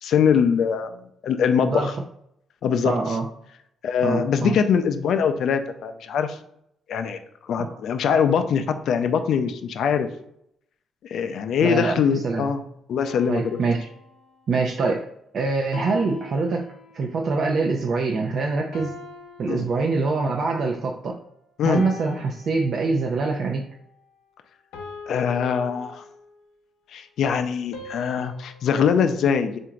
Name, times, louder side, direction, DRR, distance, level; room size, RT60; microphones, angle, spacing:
voice 1, 0.0-1.8 2.6-3.2 3.8-6.4 6.9-10.1 11.0-12.6 12.9-13.6 19.5-19.7 21.6-21.8 25.1-26.0 26.9-29.6, left 7 dB, 70° left, 8 dB, 0.4 m, -23 dB
voice 2, 2.8-3.3 4.0-4.6 7.6-7.8 11.6-12.5 13.3-13.9 14.5-15.1 15.3-18.9 19.4-21.2 21.6-23.6, right 3 dB, 55° right, 1 dB, 0.5 m, -24 dB
sound 1, 13.0-14.7 15.7-17.2 18.7-20.4 21.7-23.2 24.7-26.5 27.7-28.8, left 4 dB, 90° left, 0.7 m, -42 dB
3.7 x 2.5 x 4.4 m, 0.74 s
cardioid pair, 90°, 0 cm